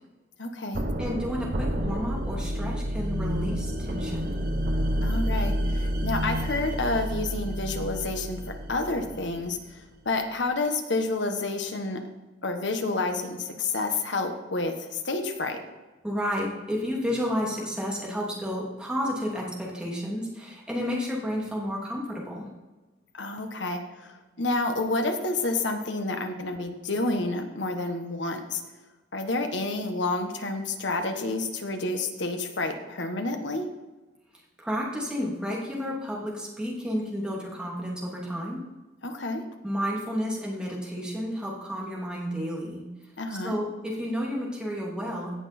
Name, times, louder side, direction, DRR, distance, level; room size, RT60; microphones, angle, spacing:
voice 1, 0.4-0.8 5.0-8.4 8.7-12.0 12.4-15.6 23.1-28.6 29.1-33.7 39.0-39.4 43.2-43.5, left 2 dB, 80° left, 5 dB, 1.4 m, -29 dB
sound 1, 0.7-9.6, equal, 55° right, 1.2 m, -29 dB
voice 2, 1.0-4.4 16.0-22.5 34.6-38.6 39.6-42.8 43.4-45.3, equal, 5° right, -4 dB, 2.7 m, -31 dB
17.0 x 6.1 x 4.4 m, 1.2 s
head